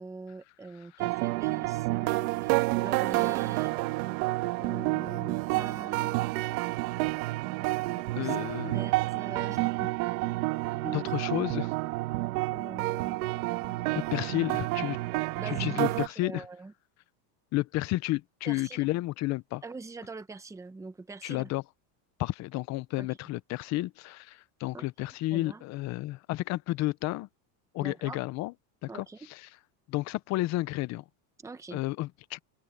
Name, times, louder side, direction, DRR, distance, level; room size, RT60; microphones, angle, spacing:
voice 1, 0.0-3.7 4.6-6.2 7.4-9.9 10.2-10.3 10.7-11.0 12.5-13.2 13.6-13.7 15.4-16.7 18.5-18.9 19.6-21.5 23.0-23.1 24.7-24.9 25.3-25.6 27.8-28.2 28.9-29.3 31.4-31.8, right 3 dB, 5° right, 1.0 m, -43 dB
sound 1, 1.0-16.1, right 21 dB, 70° right, 1.7 m, -29 dB
voice 2, 8.2-8.8 10.9-11.7 13.9-15.0 15.5-16.5 17.5-19.6 21.2-21.6 22.2-27.3 27.7-28.5 28.8-29.5 29.9-31.0 31.7-32.4, left 18 dB, 40° left, 0.6 m, -31 dB
open air
cardioid pair, 150°, 46 cm